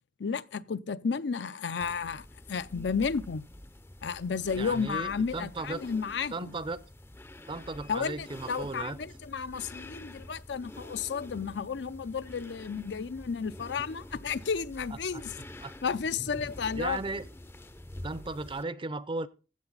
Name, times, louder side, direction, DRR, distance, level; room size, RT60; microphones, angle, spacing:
voice 1, 0.2-3.5 4.0-6.5 7.9-15.3 15.8-17.0, left 5 dB, 70° left, 0.5 m, -32 dB
sound 1, 1.8-18.6, left 1 dB, 15° left, 0.5 m, -47 dB
voice 2, 4.5-5.8 6.3-6.8 7.5-9.0 14.9-15.2 15.6-15.7 16.7-17.3 18.0-19.3, right 3 dB, 30° right, 0.6 m, -36 dB
15.0 x 7.7 x 3.9 m
head